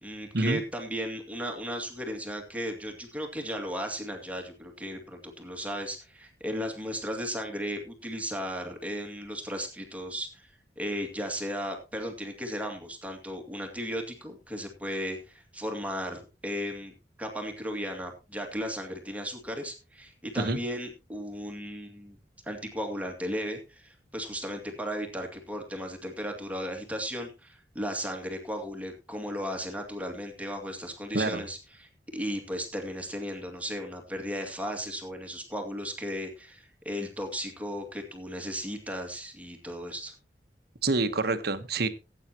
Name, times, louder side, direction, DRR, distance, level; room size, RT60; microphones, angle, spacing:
voice 1, 0.0-10.5 10.8-16.9 17.2-22.2 22.5-40.1, equal, 10° right, 3 dB, 2.2 m, -35 dB
voice 2, 31.1-31.5 40.8-41.9, right 3 dB, 60° right, 10 dB, 1.2 m, -27 dB
18.0 x 8.9 x 3.0 m, 0.29 s
head